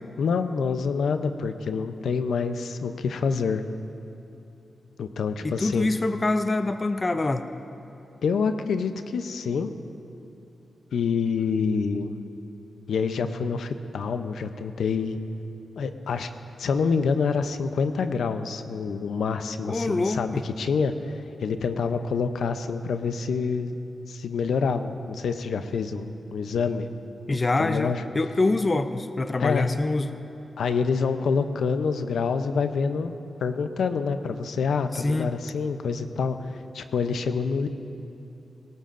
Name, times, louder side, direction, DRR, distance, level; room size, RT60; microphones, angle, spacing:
voice 1, 0.2-3.6 5.0-5.9 8.2-9.7 10.9-12.2 12.9-15.2 15.8-16.3 16.6-21.1 21.4-23.8 24.1-26.9 27.3-28.0 29.4-29.7 30.6-33.1 33.4-37.7, left 5 dB, 85° left, 9 dB, 0.6 m, -27 dB
voice 2, 5.4-7.5 19.7-20.4 27.3-30.1 34.9-35.3, left 2 dB, 25° left, 9 dB, 0.4 m, -25 dB
18.5 x 18.0 x 2.6 m, 2.9 s
wide cardioid pair, 135°, 0 cm